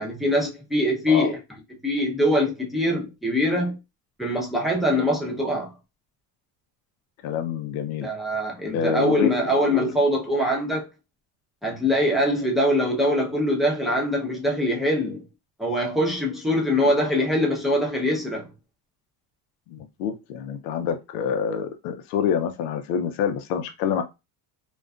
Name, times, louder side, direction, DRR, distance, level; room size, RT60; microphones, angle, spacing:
voice 1, 0.0-1.4 1.8-3.8 4.2-5.7 8.0-10.9 11.6-15.2 15.6-18.5, equal, ahead, 0.7 m, -23 dB
voice 2, 7.2-8.1 8.7-9.4 9.7-9.9 16.8-16.9 19.7-24.0, left 7 dB, 85° left, 0.6 m, -27 dB
2.4 x 2.2 x 2.3 m
supercardioid pair, 110°, 44 cm